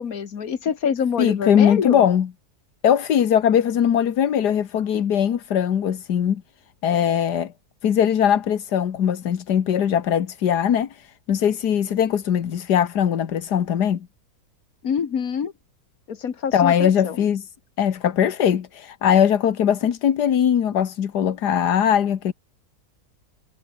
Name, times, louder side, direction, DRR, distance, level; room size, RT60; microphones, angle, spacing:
voice 1, 0.0-2.0 14.8-15.5 16.1-17.2, left 7 dB, 60° left, 1.9 m, -25 dB
voice 2, 1.2-2.3 2.8-6.4 6.8-7.5 7.8-14.1 16.5-17.5 17.8-22.3, left 9 dB, 80° left, 1.8 m, -20 dB
omnidirectional pair, 1.7 m